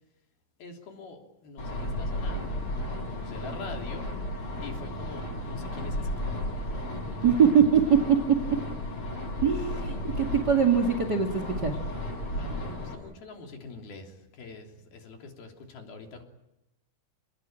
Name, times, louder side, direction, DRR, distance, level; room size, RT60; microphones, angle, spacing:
voice 1, 0.6-2.7 3.1-4.1 4.6-6.2 6.9-7.6 8.0-8.3 12.4-16.2, left 3 dB, 65° left, 3 dB, 5.2 m, -44 dB
sound 1, 1.6-12.9, left 1 dB, 35° left, 9.0 m, -34 dB
voice 2, 7.2-7.8 9.4-11.8, right 7 dB, 35° right, 8 dB, 2.0 m, -22 dB
30.0 x 20.5 x 9.1 m, 0.91 s
omnidirectional pair, 4.8 m